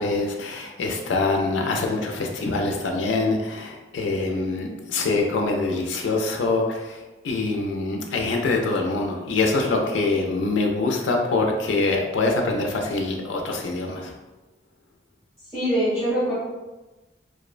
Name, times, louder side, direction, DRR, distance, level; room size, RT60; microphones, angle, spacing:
voice 1, 0.0-7.0 7.2-14.1, left 3 dB, 85° left, 1 dB, 0.4 m, -24 dB
voice 2, 15.5-16.3, equal, 15° right, -11 dB, 1.2 m, -23 dB
2.4 x 2.1 x 2.4 m, 1.1 s
head